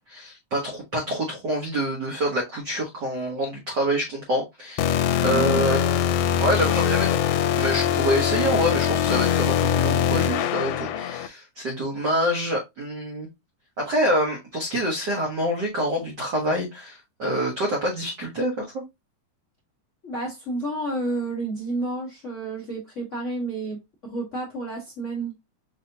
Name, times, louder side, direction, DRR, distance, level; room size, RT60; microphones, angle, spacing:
voice 1, 0.1-6.1 6.4-7.2 7.6-13.3 13.8-18.8, equal, 80° right, 0.9 m, -26 dB
sound 1, 4.8-11.3, left 9 dB, 85° left, 2.0 m, -22 dB
voice 2, 5.2-5.6 20.0-25.3, right 2 dB, 65° left, 0.7 m, -30 dB
5.7 x 2.7 x 2.8 m
omnidirectional pair, 3.6 m